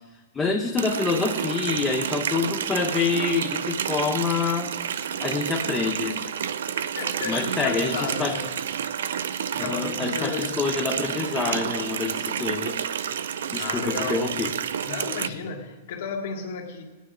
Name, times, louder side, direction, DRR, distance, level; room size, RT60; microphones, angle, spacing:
voice 1, 0.3-4.7 5.2-6.2 7.3-8.4 9.6-12.8 13.5-14.5, left 4 dB, 10° left, 1 dB, 0.6 m, -27 dB
Water tap faucet, 0.8-15.3, right 8 dB, 75° right, 0.5 m, -30 dB
voice 2, 6.9-8.5 9.5-10.8 13.6-14.4 14.8-16.8, left 6 dB, 55° left, 3 dB, 1.6 m, -33 dB
18.5 x 9.1 x 3.7 m, 1.2 s
supercardioid pair, 175°, 0 cm